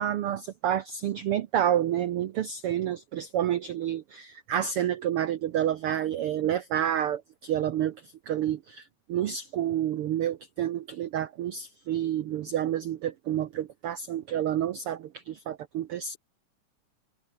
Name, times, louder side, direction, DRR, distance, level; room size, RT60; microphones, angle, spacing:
voice 1, 0.0-16.2, right 10 dB, 85° right, 1.2 m, -29 dB
omnidirectional pair, 3.7 m